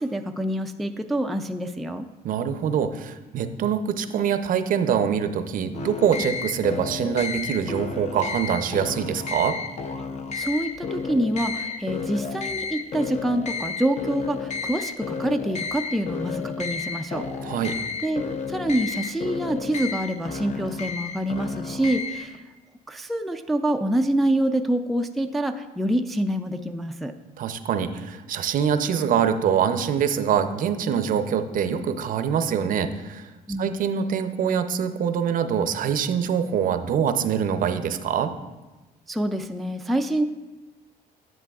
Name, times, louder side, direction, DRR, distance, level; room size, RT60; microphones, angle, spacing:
voice 1, 0.0-2.1 10.3-17.6 18.0-18.2 18.5-22.4 22.9-27.1 33.5-33.8 39.1-40.2, right 1 dB, ahead, 5 dB, 0.3 m, -26 dB
voice 2, 2.2-9.6 17.4-17.8 27.4-33.3 33.6-38.3, right 8 dB, 55° right, 9 dB, 0.5 m, -24 dB
sound 1, 5.7-22.4, left 5 dB, 40° left, 0.6 m, -32 dB
10.0 x 7.4 x 2.4 m, 1.1 s
cardioid pair, 110°, 17 cm